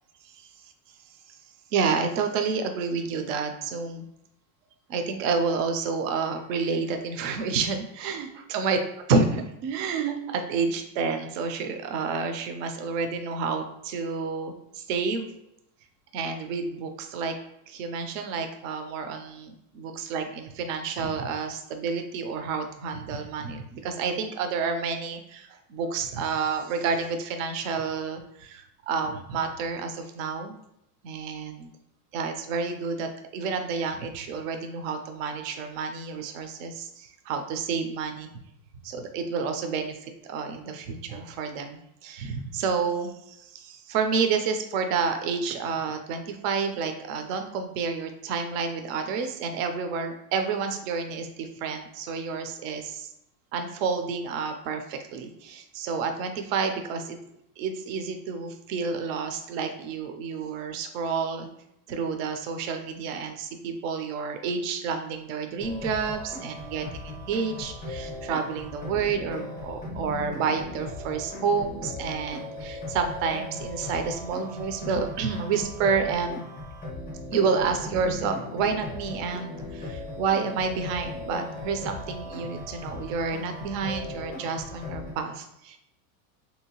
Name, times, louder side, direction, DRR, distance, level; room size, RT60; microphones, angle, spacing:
voice 1, 0.2-0.6 1.3-1.4 1.7-4.1 4.9-8.8 9.1-15.3 16.1-17.4 17.7-30.5 31.0-31.7 32.1-38.3 38.8-53.1 53.5-57.2 57.6-61.5 61.9-76.5 77.3-85.8, right 5 dB, 60° right, 6 dB, 0.5 m, -29 dB
sound 1, 65.6-85.1, left 2 dB, 10° left, 0.4 m, -38 dB
3.3 x 2.7 x 2.8 m, 0.80 s
supercardioid pair, 170°, 45 cm